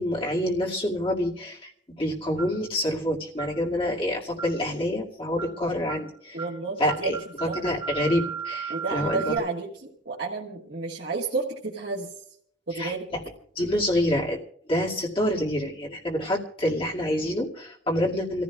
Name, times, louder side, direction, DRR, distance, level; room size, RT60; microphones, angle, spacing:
voice 1, 0.0-6.4 6.8-9.3 12.7-13.2 13.6-14.4 14.7-18.4, left 1 dB, 30° left, -2 dB, 2.2 m, -27 dB
sound 1, 2.4-2.7 3.4-3.6 4.4-4.7 5.4-5.6 5.9-6.1 6.4-6.6 6.9-9.4, right 7 dB, 25° right, 2.9 m, -35 dB
voice 2, 6.3-7.2 7.4-7.6 8.7-12.1 12.7-13.1, right 3 dB, 65° right, -4 dB, 1.6 m, -31 dB
28.5 x 15.0 x 2.4 m, 0.65 s
head